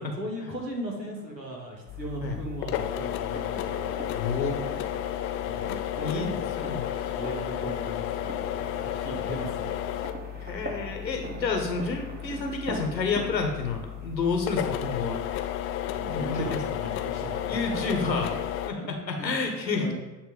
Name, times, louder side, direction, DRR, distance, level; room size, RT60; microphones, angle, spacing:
voice 1, 0.0-3.9 5.5-6.5 7.0-9.9 10.7-10.9 15.9-17.6 17.9-18.0 18.8-18.9 19.2-19.3 19.7-19.9, right 1 dB, 85° right, 0 dB, 1.7 m, -37 dB
sound 1, 1.2-14.7, right 1 dB, 20° right, 1.1 m, -43 dB
sound 2, 1.9-18.7, left 11 dB, 30° left, 0.4 m, -33 dB
voice 2, 4.1-4.6 6.0-6.3 6.6-6.9 10.4-15.2 16.1-16.6 17.5-18.3 18.7-19.9, left 4 dB, 90° left, 3 dB, 1.2 m, -29 dB
8.6 x 3.0 x 5.0 m, 1.1 s
figure-of-eight pair, 75°, 50 cm